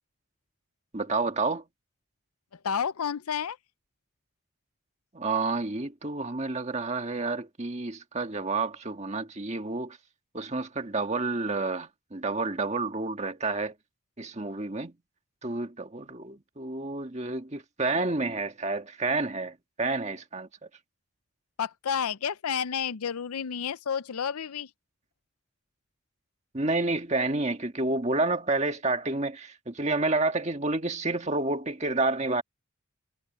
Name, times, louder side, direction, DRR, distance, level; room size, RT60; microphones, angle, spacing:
voice 1, 0.9-1.6 5.1-10.0 10.3-13.7 14.2-14.9 15.4-20.5 26.5-32.4, right 3 dB, 30° right, 1.6 m, -29 dB
voice 2, 2.6-3.6 21.6-24.7, left 7 dB, 90° left, 0.6 m, -30 dB
head